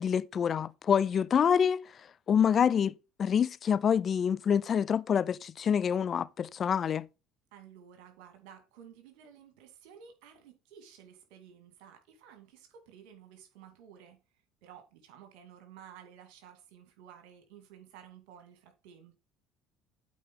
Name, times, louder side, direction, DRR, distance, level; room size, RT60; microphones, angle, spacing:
voice 1, 0.0-1.9 2.3-2.9 3.2-7.1, left 7 dB, 45° left, 0.4 m, -26 dB
voice 2, 7.5-14.2 14.6-19.2, right 8 dB, 70° right, 2.4 m, -54 dB
8.3 x 4.7 x 5.3 m
hypercardioid pair, 65°, 0 cm